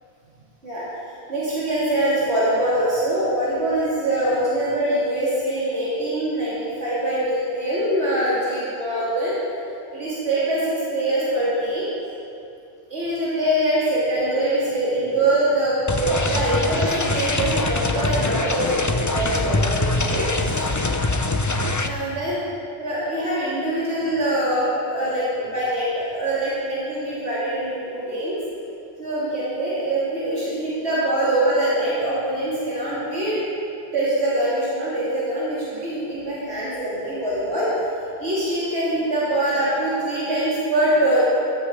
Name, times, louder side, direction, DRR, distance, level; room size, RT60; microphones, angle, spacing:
voice 1, 1.3-9.4 9.9-11.9 12.9-20.3 21.8-22.4 22.8-28.4 29.0-33.4 33.9-37.7 38.2-41.2, right 1 dB, 65° right, -10 dB, 3.5 m, -23 dB
sound 1, 15.9-21.9, left 2 dB, 20° left, 0.5 m, -23 dB
15.0 x 13.5 x 4.8 m, 2.6 s
omnidirectional pair, 1.2 m